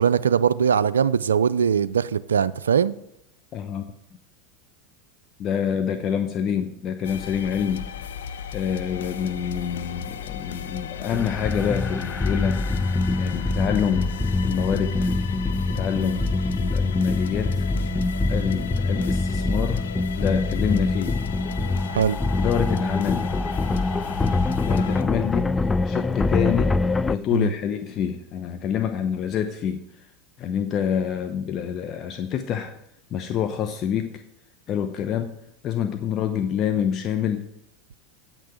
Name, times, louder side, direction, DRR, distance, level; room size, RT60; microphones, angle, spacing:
voice 1, 0.0-2.9 21.9-22.2 27.3-27.5, right 7 dB, 85° right, 16 dB, 0.3 m, -21 dB
voice 2, 3.5-3.9 5.4-7.9 8.5-12.6 13.2-14.1 14.4-15.1 15.7-17.7 18.3-19.8 20.2-21.2 22.4-23.4 24.6-30.1 30.4-32.7 33.1-34.2 34.7-35.3 35.6-37.5, left 8 dB, 45° left, 7 dB, 0.8 m, -27 dB
sound 1, 7.0-25.0, left 8 dB, 80° left, 0.6 m, -36 dB
sound 2, 11.1-27.2, left 2 dB, 15° left, 0.3 m, -24 dB
8.8 x 6.0 x 7.0 m, 0.79 s
hypercardioid pair, 90°, 0 cm